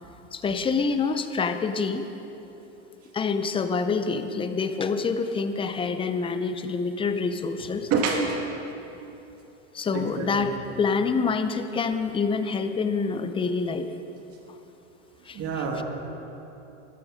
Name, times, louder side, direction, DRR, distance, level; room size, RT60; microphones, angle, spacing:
voice 1, 0.3-2.1 3.1-7.9 9.7-13.9 15.3-15.6, left 4 dB, 15° left, 9 dB, 0.6 m, -27 dB
voice 2, 7.9-8.4 9.9-10.5 15.3-15.8, right 5 dB, 40° right, 1 dB, 2.4 m, -27 dB
13.5 x 11.5 x 5.2 m, 2.9 s
supercardioid pair, 125°, 35 cm